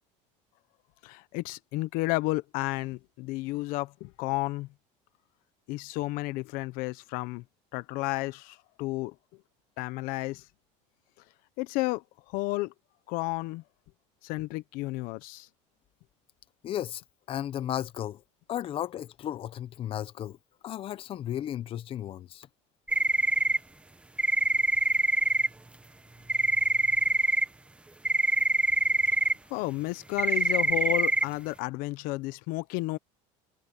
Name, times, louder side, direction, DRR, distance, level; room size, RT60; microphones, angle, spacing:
voice 1, 1.0-4.7 5.7-7.4 7.7-9.1 9.8-10.4 11.6-12.0 12.3-12.7 13.1-13.6 14.2-15.5 29.5-33.0, left 21 dB, 60° left, 0.9 m, -32 dB
voice 2, 16.6-17.0 17.3-18.2 18.5-20.4 20.6-22.5, left 11 dB, 35° left, 0.9 m, -34 dB
sound 1, 22.9-23.6 24.2-25.5 26.3-27.4 28.0-29.3 30.2-31.2, right 2 dB, 5° right, 1.1 m, -24 dB
cardioid pair, 145°, 16 cm